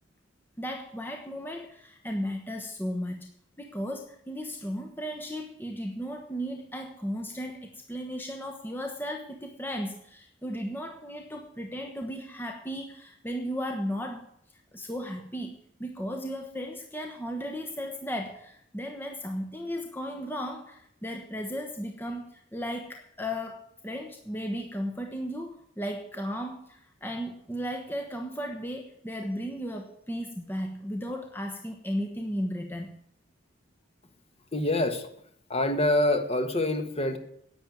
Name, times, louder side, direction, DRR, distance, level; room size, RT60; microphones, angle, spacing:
voice 1, 0.6-3.3 3.6-14.3 14.7-15.5 15.8-32.9, equal, 10° left, 3 dB, 1.1 m, -35 dB
voice 2, 34.5-35.1 35.5-37.2, left 1 dB, 30° left, 7 dB, 1.5 m, -25 dB
10.5 x 9.0 x 9.2 m, 0.70 s
head